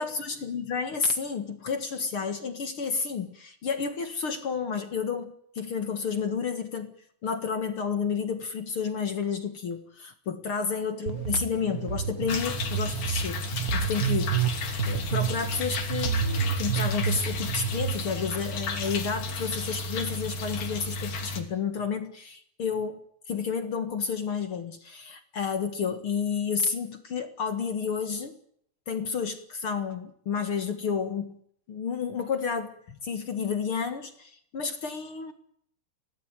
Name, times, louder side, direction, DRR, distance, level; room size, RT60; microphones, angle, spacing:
voice 1, 0.0-7.0 7.2-14.4 14.9-16.2 16.6-23.0 23.3-28.4 28.9-31.4 31.7-35.3, left 6 dB, 45° left, 9 dB, 2.1 m, -31 dB
sound 1, 11.1-17.9, right 7 dB, 45° right, 1.1 m, -29 dB
sound 2, 12.3-21.4, left 2 dB, 65° left, 4.5 m, -33 dB
25.0 x 18.0 x 9.1 m, 0.67 s
omnidirectional pair, 4.2 m